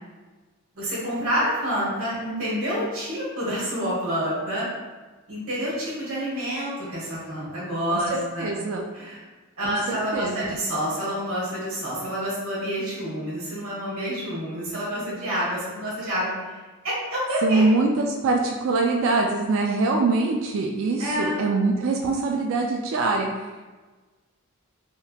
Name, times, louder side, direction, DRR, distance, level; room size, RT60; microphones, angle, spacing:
voice 1, 0.7-4.7 5.3-8.5 8.9-9.2 9.6-16.3 16.8-17.6 21.0-21.4, equal, 90° right, -7 dB, 1.3 m, -28 dB
voice 2, 7.9-8.9 9.6-10.6 17.4-23.3, right 3 dB, 65° right, 1 dB, 0.3 m, -24 dB
3.5 x 2.8 x 2.3 m, 1.3 s
head